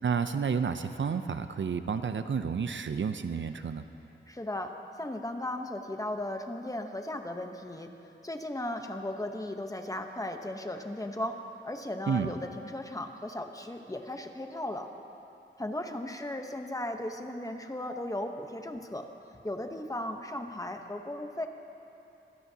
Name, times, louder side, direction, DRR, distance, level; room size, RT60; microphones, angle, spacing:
voice 1, 0.0-3.8 12.1-12.3, right 6 dB, 65° right, 9 dB, 0.6 m, -30 dB
voice 2, 4.3-7.9 8.2-14.9 15.6-19.1 19.4-21.5, left 1 dB, 15° left, 5 dB, 0.9 m, -36 dB
25.0 x 16.5 x 2.8 m, 2.8 s
wide cardioid pair, 105°, 21 cm